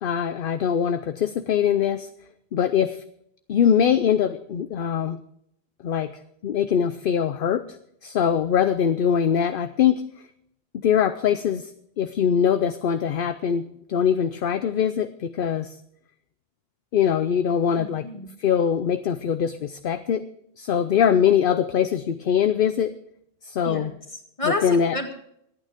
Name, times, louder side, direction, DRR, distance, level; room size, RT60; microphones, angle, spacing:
voice 1, 0.0-2.1 2.5-3.0 3.5-5.2 5.8-6.1 6.4-7.6 8.0-10.0 10.7-11.7 12.0-15.7 16.9-18.1 18.4-20.2 20.6-22.9 23.4-23.9 24.6-25.0, left 8 dB, 60° left, 11 dB, 0.8 m, -22 dB
voice 2, 17.8-18.4 23.6-25.1, left 2 dB, 30° left, 4 dB, 2.0 m, -31 dB
25.5 x 9.1 x 3.6 m, 0.73 s
omnidirectional pair, 1.1 m